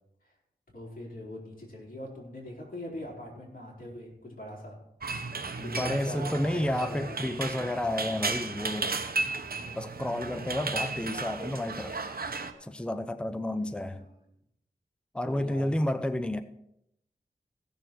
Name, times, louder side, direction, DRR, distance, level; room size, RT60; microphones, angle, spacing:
voice 1, 0.7-4.8 5.6-7.3 13.6-14.2 15.2-15.8, left 1 dB, 55° left, -3 dB, 4.2 m, -42 dB
sound 1, 5.0-12.5, right 3 dB, 60° right, 0.9 m, -34 dB
voice 2, 5.6-8.9 9.7-12.0 12.6-14.1 15.1-16.4, left 1 dB, 5° left, 10 dB, 0.6 m, -31 dB
16.0 x 6.9 x 4.5 m, 0.79 s
wide cardioid pair, 75°, 18 cm